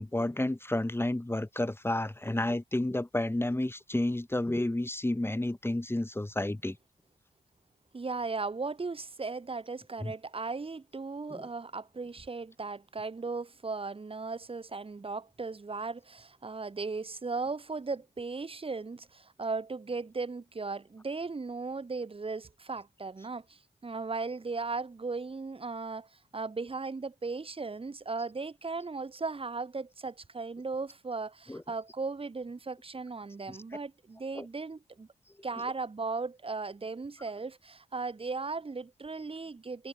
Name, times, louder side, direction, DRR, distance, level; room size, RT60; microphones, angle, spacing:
voice 1, 0.0-6.8 10.0-10.1 11.3-11.5 31.5-31.6 33.5-33.6 34.4-34.5, left 1 dB, 15° left, 2.3 m, -31 dB
voice 2, 7.9-35.1 35.4-39.9, right 4 dB, 40° right, 1.2 m, -37 dB
cardioid pair, 65°, 15 cm